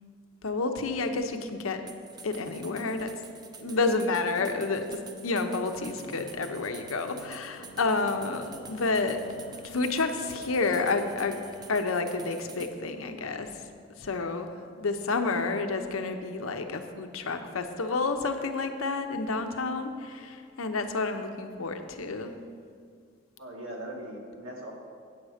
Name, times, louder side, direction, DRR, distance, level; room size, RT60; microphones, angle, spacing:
voice 1, 0.4-1.8 2.2-3.1 3.6-9.2 9.6-11.4 11.7-13.5 14.0-14.5 14.8-22.3, left 3 dB, 85° left, 6 dB, 0.7 m, -30 dB
sound 1, 1.9-12.7, right 4 dB, 20° right, 0.4 m, -48 dB
voice 2, 3.6-4.0 23.4-24.7, right 1 dB, 80° right, -1 dB, 1.7 m, -40 dB
sound 2, 5.8-11.7, left 1 dB, 25° left, 0.8 m, -50 dB
8.7 x 7.5 x 5.0 m, 2.2 s
head